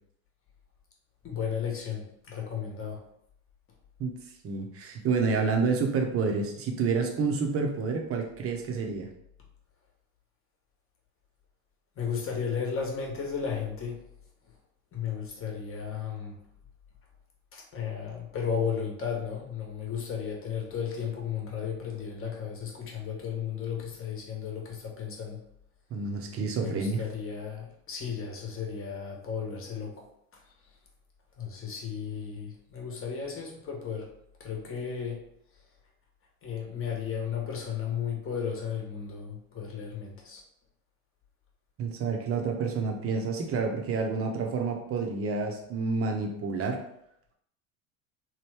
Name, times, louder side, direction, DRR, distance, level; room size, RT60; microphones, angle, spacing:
voice 1, 1.2-3.0 12.0-14.0 14.9-16.4 17.5-25.4 26.6-30.1 31.4-34.1 34.4-35.3 36.4-40.4, left 7 dB, 30° left, -1 dB, 1.1 m, -34 dB
voice 2, 4.4-9.1 25.9-27.0 41.8-46.8, right 4 dB, 30° right, 2 dB, 0.8 m, -29 dB
3.1 x 2.2 x 3.3 m, 0.75 s
hypercardioid pair, 85°, 42 cm